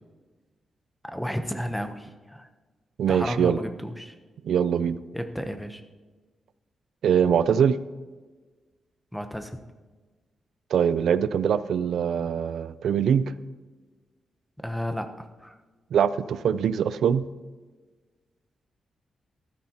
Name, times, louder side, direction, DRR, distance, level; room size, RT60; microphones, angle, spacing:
voice 1, 1.0-2.5 3.1-4.1 5.1-5.8 9.1-9.6 14.6-15.1 15.4-15.5, equal, ahead, 7 dB, 0.8 m, -32 dB
voice 2, 3.0-3.6 4.4-5.0 7.0-7.8 10.7-13.3 15.9-17.2, right 8 dB, 80° right, 15 dB, 0.4 m, -23 dB
14.5 x 13.0 x 2.9 m, 1.3 s
wide cardioid pair, 145°, 0 cm